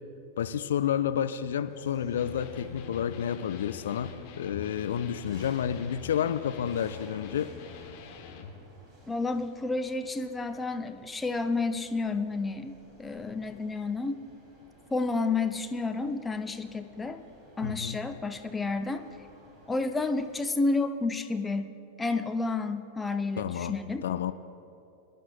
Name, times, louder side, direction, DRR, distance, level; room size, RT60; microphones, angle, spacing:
voice 1, 0.4-7.5 17.6-18.0 23.4-24.3, left 9 dB, 60° left, 11 dB, 0.4 m, -30 dB
sound 1, 1.7-20.4, right 1 dB, 15° right, 3.2 m, -56 dB
Electric guitar, 2.1-8.6, left 7 dB, 45° left, 1.2 m, -46 dB
voice 2, 9.1-14.2 14.9-17.2 17.6-19.0 19.7-24.1, left 3 dB, 10° left, 7 dB, 0.6 m, -30 dB
24.0 x 11.0 x 2.4 m, 2.7 s
figure-of-eight pair, 90°, 0 cm